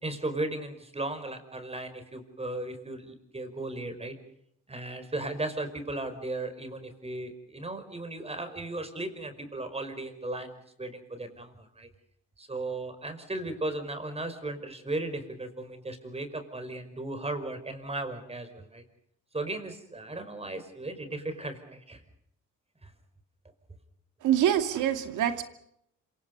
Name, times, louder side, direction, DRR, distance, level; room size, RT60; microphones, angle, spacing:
voice 1, 0.0-4.2 4.7-11.9 12.4-18.8 19.3-22.0 22.8-22.9, right 2 dB, 20° right, 8 dB, 5.4 m, -36 dB
voice 2, 24.2-25.4, right 10 dB, 80° right, 8 dB, 2.6 m, -25 dB
27.0 x 25.5 x 5.5 m, 0.75 s
cardioid pair, 90°, 30 cm